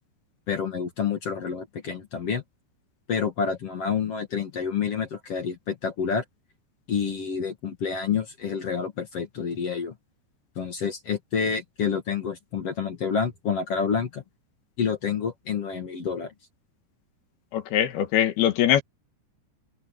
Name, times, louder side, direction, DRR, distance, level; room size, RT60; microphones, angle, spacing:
voice 1, 0.5-2.4 3.1-6.2 6.9-9.9 10.6-14.2 14.8-16.3, left 6 dB, 55° left, 1.8 m, -28 dB
voice 2, 17.5-18.8, left 10 dB, 70° left, 3.0 m, -22 dB
open air
omnidirectional pair, 5.2 m